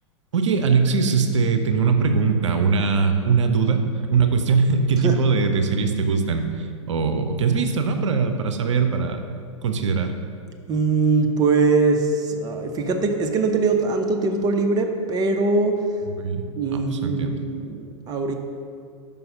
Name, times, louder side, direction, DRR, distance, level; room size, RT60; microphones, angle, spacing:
voice 1, 0.3-9.2 9.6-10.1 16.2-16.5 16.7-17.4, right 5 dB, 70° right, 6 dB, 0.6 m, -21 dB
voice 2, 10.7-15.8 16.6-18.3, right 3 dB, 25° right, 4 dB, 0.6 m, -22 dB
5.5 x 5.4 x 5.4 m, 2.3 s
figure-of-eight pair, 95°, 16 cm